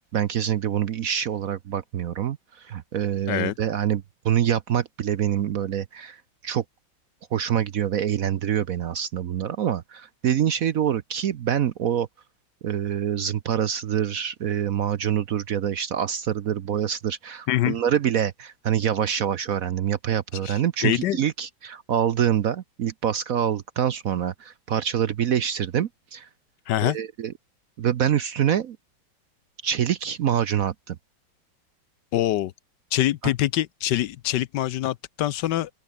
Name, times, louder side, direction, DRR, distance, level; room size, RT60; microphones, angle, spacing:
voice 1, 0.1-6.2 6.4-6.6 7.3-12.1 12.6-26.3 26.8-27.3 27.8-28.8 29.6-31.0 33.2-33.3, right 9 dB, 60° right, 1.0 m, -25 dB
voice 2, 20.4-21.2 26.7-27.0 32.1-32.5 32.9-35.7, left 13 dB, 70° left, 1.2 m, -24 dB
open air
omnidirectional pair, 2.1 m